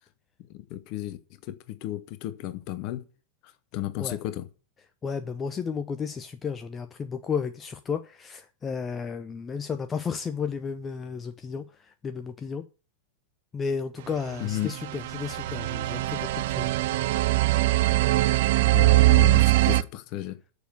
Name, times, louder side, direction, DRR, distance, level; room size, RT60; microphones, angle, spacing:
voice 1, 0.5-3.1 3.7-4.5 14.4-14.7 18.7-20.4, left 15 dB, 45° left, 1.2 m, -33 dB
voice 2, 5.0-12.6 13.5-16.7, left 6 dB, 20° left, 0.7 m, -33 dB
sound 1, 14.4-19.8, right 18 dB, 55° right, 0.5 m, -22 dB
7.0 x 6.7 x 7.9 m
figure-of-eight pair, 90°, 0 cm